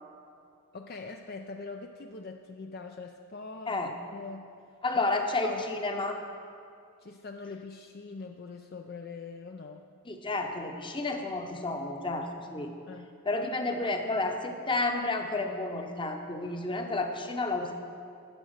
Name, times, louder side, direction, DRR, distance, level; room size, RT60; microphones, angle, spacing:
voice 1, 0.7-3.8 4.1-4.5 4.9-5.1 5.4-5.8 7.0-9.8 12.9-13.1, left 4 dB, 45° left, 4 dB, 0.4 m, -42 dB
voice 2, 4.8-6.2 10.1-12.7 13.2-17.7, left 2 dB, 20° left, 4 dB, 0.9 m, -31 dB
12.5 x 8.2 x 6.5 m, 2.4 s
head